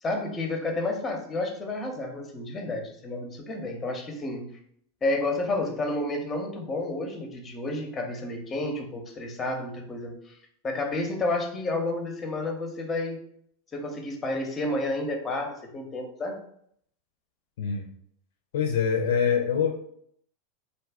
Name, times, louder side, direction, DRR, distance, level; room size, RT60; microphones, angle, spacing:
voice 1, 0.0-4.5 5.0-10.4 10.6-13.2 13.7-16.4, left 2 dB, 25° left, 3 dB, 0.7 m, -30 dB
voice 2, 17.6-17.9 18.5-19.7, left 7 dB, 70° left, 1 dB, 0.5 m, -24 dB
2.5 x 2.4 x 3.5 m, 0.68 s
hypercardioid pair, 95°, 0 cm